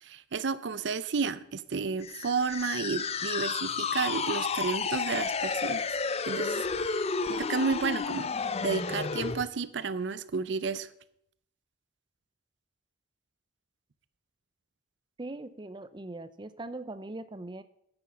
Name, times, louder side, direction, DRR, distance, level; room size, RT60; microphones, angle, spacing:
voice 1, 0.0-5.9 6.3-8.3 8.6-10.9, right 5 dB, 70° right, 16 dB, 0.5 m, -32 dB
sound 1, 2.0-9.5, left 5 dB, 35° left, 0.5 m, -31 dB
voice 2, 15.2-17.6, right 2 dB, 25° right, 13 dB, 0.6 m, -40 dB
10.0 x 8.9 x 5.7 m, 0.74 s
head